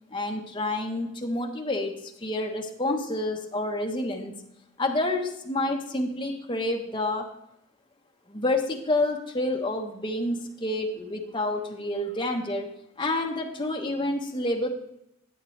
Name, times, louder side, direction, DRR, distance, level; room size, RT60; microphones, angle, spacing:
voice 1, 0.1-4.3 4.8-7.3 8.3-12.7 13.0-14.7, left 2 dB, 25° left, 1 dB, 1.1 m, -28 dB
11.5 x 8.3 x 3.2 m, 0.80 s
head